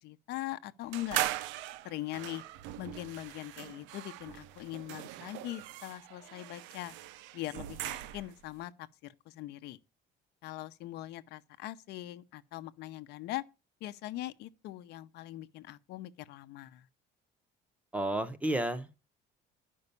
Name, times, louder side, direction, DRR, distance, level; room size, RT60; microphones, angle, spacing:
voice 1, 0.0-1.2 1.8-2.4 2.8-6.9 7.3-8.7 9.0-9.8 10.4-13.4 13.8-16.9, left 15 dB, 65° left, 0.8 m, -41 dB
sound 1, 0.9-8.4, right 14 dB, 85° right, 0.8 m, -40 dB
voice 2, 17.9-19.0, right 1 dB, 5° right, 0.7 m, -32 dB
11.0 x 5.5 x 6.8 m
cardioid pair, 175°, 19 cm